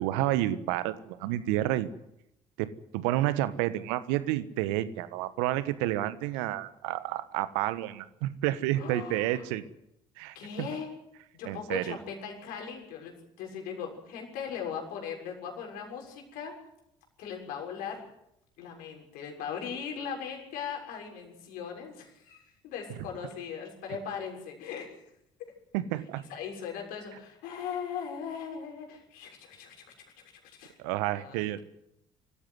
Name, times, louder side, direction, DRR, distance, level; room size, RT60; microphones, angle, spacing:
voice 1, 0.0-1.9 2.6-9.6 10.2-10.7 11.4-12.0 25.7-26.2 30.8-31.6, right 14 dB, 70° right, 14 dB, 1.4 m, -30 dB
voice 2, 8.8-9.4 10.3-10.9 11.3-16.5 17.2-18.0 18.6-25.0 26.3-29.8 30.4-30.7 31.2-31.6, left 7 dB, 65° left, 1 dB, 6.8 m, -39 dB
25.0 x 15.5 x 9.5 m, 0.83 s
figure-of-eight pair, 50°, 16 cm